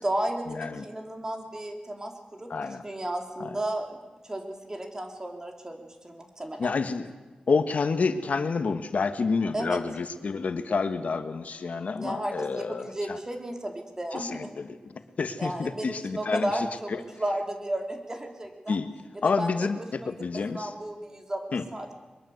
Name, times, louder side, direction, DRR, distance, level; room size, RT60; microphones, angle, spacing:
voice 1, 0.0-2.5 2.8-4.0 4.2-6.7 9.5-9.8 11.9-14.5 15.4-18.8 19.1-21.4 21.7-21.9, right 1 dB, 25° right, 3 dB, 3.5 m, -33 dB
voice 2, 2.5-2.8 3.4-3.5 6.6-7.1 7.5-13.2 14.1-16.5 16.9-17.0 18.7-18.9 19.2-20.7 21.5-21.6, left 4 dB, 75° left, 9 dB, 1.5 m, -29 dB
23.0 x 22.0 x 8.0 m, 1.2 s
wide cardioid pair, 85°, 3 cm